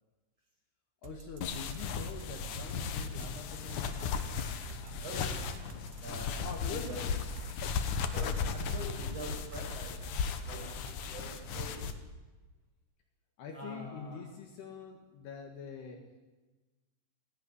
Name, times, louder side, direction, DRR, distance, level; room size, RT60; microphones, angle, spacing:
voice 1, 1.0-4.2 6.4-7.3 13.4-16.0, left 5 dB, 60° left, 3 dB, 3.5 m, -45 dB
sound 1, 1.0-11.7, right 6 dB, 80° right, 3.8 m, -50 dB
sound 2, 1.4-11.9, left 6 dB, 80° left, 1.8 m, -36 dB
voice 2, 4.8-5.5 6.0-7.0 8.1-11.8 13.5-14.2, right 1 dB, 30° right, -1 dB, 7.2 m, -45 dB
17.0 x 16.5 x 10.0 m, 1.2 s
omnidirectional pair, 5.7 m